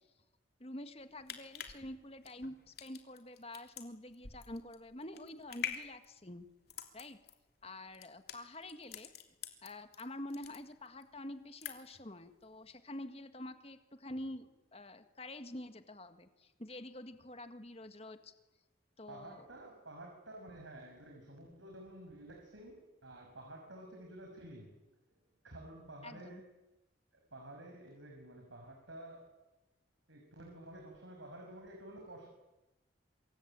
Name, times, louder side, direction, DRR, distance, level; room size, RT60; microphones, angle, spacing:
voice 1, 0.6-6.5 6.9-7.2 7.6-9.1 9.6-18.3 19.0-19.4 26.0-26.4, left 1 dB, 35° left, 9 dB, 1.8 m, -47 dB
sound 1, 1.0-10.0 10.3-11.1 11.4-12.1 12.4-12.5, left 8 dB, 55° left, 3.1 m, -46 dB
voice 2, 19.1-24.8 25.1-25.2 25.4-26.4 27.1-29.3 30.1-32.3, right 1 dB, 90° right, 1 dB, 6.1 m, -51 dB
26.0 x 23.5 x 9.0 m, 1.0 s
head